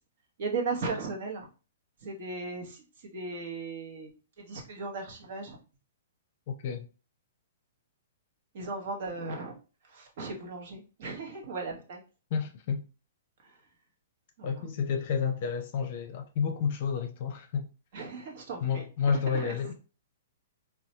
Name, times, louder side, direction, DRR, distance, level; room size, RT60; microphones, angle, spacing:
voice 1, 0.4-1.5 2.0-2.8 3.1-4.1 4.4-5.6 8.5-9.6 9.9-12.0 14.4-14.7 17.9-18.8 19.3-19.7, right 4 dB, 55° right, 1.0 m, -36 dB
voice 2, 6.5-6.9 12.3-12.8 14.4-17.7 18.6-19.7, left 6 dB, 50° left, 0.5 m, -30 dB
4.0 x 2.2 x 2.8 m
figure-of-eight pair, 120°, 0 cm